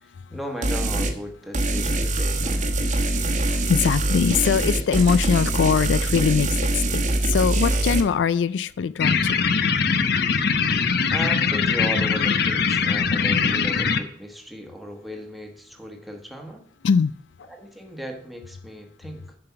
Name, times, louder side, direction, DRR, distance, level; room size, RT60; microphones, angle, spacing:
voice 1, 0.0-2.6 10.4-10.7 11.1-16.6 17.5-19.4, equal, ahead, 2 dB, 1.3 m, -36 dB
sound 1, 0.6-1.1 1.5-8.0, right 1 dB, 45° right, 1.1 m, -23 dB
voice 2, 2.8-9.4 16.8-17.1, left 6 dB, 90° left, 17 dB, 0.4 m, -22 dB
sound 2, 9.0-14.0, left 5 dB, 65° left, 0.7 m, -21 dB
7.7 x 5.8 x 5.7 m, 0.68 s
head